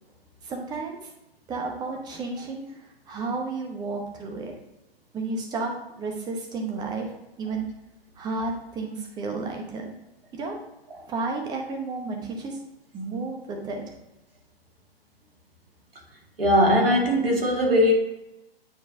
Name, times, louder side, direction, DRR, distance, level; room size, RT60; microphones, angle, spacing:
voice 1, 0.4-1.1 1.5-4.5 5.1-5.7 6.0-7.1 7.4-7.7 8.2-9.9 10.3-10.6 11.1-12.6 12.9-13.9, right 3 dB, 15° right, 0.9 m, -32 dB
voice 2, 16.4-17.9, equal, 65° right, 2.0 m, -20 dB
8.8 x 4.4 x 2.6 m
figure-of-eight pair, 120°, 30 cm